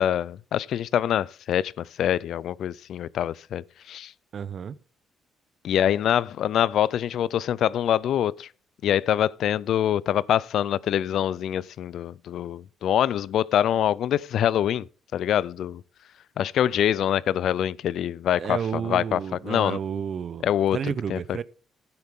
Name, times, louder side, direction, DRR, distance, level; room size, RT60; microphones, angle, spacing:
voice 1, 0.0-4.1 5.6-8.5 8.8-14.9 15.1-15.8 16.4-19.2 19.4-19.8 20.4-20.8 21.1-21.2, left 10 dB, 75° left, 0.4 m, -25 dB
voice 2, 4.3-4.8 18.4-21.4, right 7 dB, 55° right, 0.7 m, -31 dB
12.0 x 9.8 x 3.6 m
cardioid pair, 90°, 0 cm